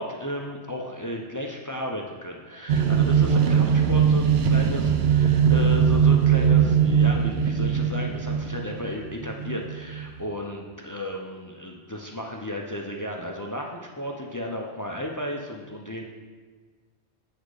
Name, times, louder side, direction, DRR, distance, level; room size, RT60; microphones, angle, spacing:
voice 1, 0.0-16.0, left 1 dB, 30° left, 0 dB, 0.3 m, -34 dB
sound 1, 2.7-10.2, right 7 dB, 70° right, 0.8 m, -21 dB
8.1 x 4.2 x 4.8 m, 1.5 s
omnidirectional pair, 1.2 m